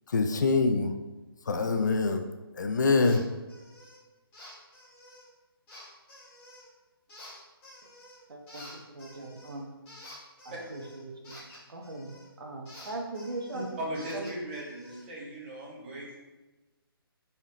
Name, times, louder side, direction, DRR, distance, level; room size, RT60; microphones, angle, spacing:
voice 1, 0.1-0.9 1.5-2.3 2.5-3.2, left 3 dB, 50° left, 6 dB, 0.5 m, -25 dB
sound 1, 3.0-3.2 3.5-4.0 4.3-5.3 5.7-6.7 7.1-8.2 8.5-12.3 12.7-15.0, left 1 dB, 10° left, 1.4 m, -50 dB
voice 2, 8.3-9.7 10.7-11.3 11.7-12.1 12.4-13.6, right 2 dB, 65° right, 1 dB, 1.3 m, -40 dB
voice 3, 13.5-16.2, right 1 dB, 25° right, -5 dB, 1.5 m, -38 dB
8.5 x 4.2 x 3.0 m, 1.1 s
hypercardioid pair, 175°, 13 cm